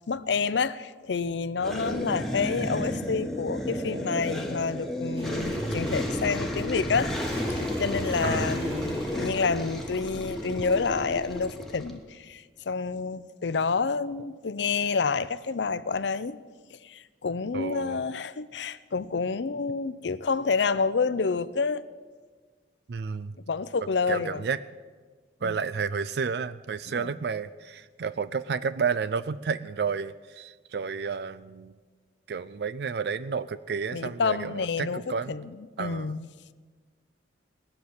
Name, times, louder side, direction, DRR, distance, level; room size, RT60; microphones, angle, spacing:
voice 1, 0.1-7.2 7.5-16.4 16.7-21.8 23.5-24.4 25.4-25.5 26.9-27.1 33.9-36.3, left 5 dB, 80° left, 0.6 m, -29 dB
sound 1, 1.6-11.9, equal, ahead, 1.3 m, -32 dB
Motorcycle, 5.2-11.5, equal, 30° right, 2.5 m, -42 dB
voice 2, 8.2-8.6 17.5-18.0 22.9-23.3 24.1-24.6 25.4-31.7 32.3-35.3 35.8-36.1, right 5 dB, 60° right, 0.4 m, -31 dB
19.0 x 6.9 x 9.5 m
head